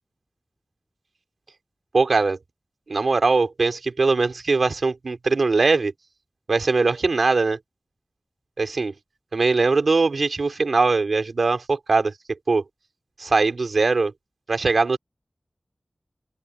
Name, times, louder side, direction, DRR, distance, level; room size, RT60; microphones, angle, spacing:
voice 1, 1.9-2.4 2.9-5.9 6.5-7.6 8.6-8.9 9.3-12.1 12.5-12.6 13.2-14.1 14.5-15.0, right 3 dB, 85° right, 3.6 m, -21 dB
open air
wide cardioid pair, 65°, 0 cm